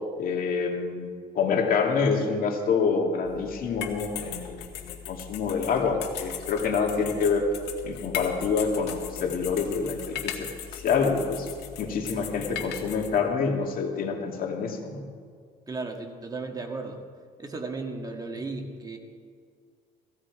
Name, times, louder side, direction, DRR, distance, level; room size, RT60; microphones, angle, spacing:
voice 1, 0.2-1.1 1.4-7.5 7.8-10.5 10.7-11.5 11.8-15.0, left 5 dB, 60° left, 2 dB, 2.5 m, -27 dB
sound 1, 3.2-13.2, left 10 dB, 85° left, 1.9 m, -38 dB
voice 2, 15.7-17.0 17.4-19.0, right 3 dB, 20° right, 3 dB, 1.9 m, -35 dB
18.0 x 15.5 x 4.9 m, 2.1 s
cardioid pair, 110°, 17 cm